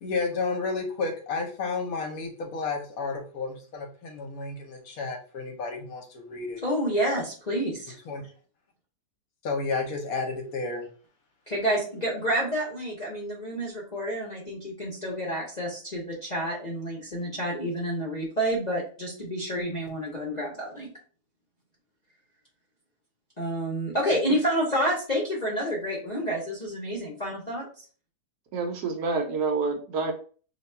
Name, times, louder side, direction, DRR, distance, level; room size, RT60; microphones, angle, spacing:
voice 1, 0.0-6.6 8.1-8.3 9.4-10.9, left 4 dB, 65° left, 3 dB, 1.0 m, -31 dB
voice 2, 6.6-7.9 11.5-20.9 23.4-27.8, equal, 40° left, -4 dB, 0.6 m, -29 dB
voice 3, 28.5-30.1, right 4 dB, 75° right, 4 dB, 1.2 m, -28 dB
2.9 x 2.3 x 4.2 m, 0.40 s
omnidirectional pair, 1.8 m